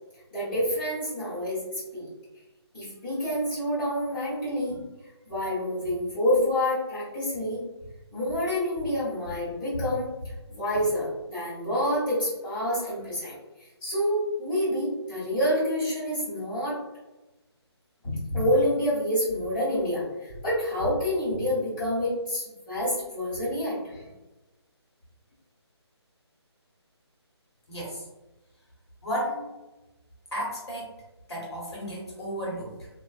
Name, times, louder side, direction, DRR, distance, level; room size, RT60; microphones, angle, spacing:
voice 1, 0.3-2.1 2.7-4.8 5.2-7.6 8.1-16.8 18.0-24.1, equal, 20° left, -13 dB, 1.4 m, -28 dB
voice 2, 27.7-28.0 29.0-29.5 30.3-31.0 31.3-32.9, equal, 70° left, -4 dB, 1.1 m, -33 dB
2.4 x 2.4 x 2.4 m, 1.0 s
hypercardioid pair, 180°, 14 cm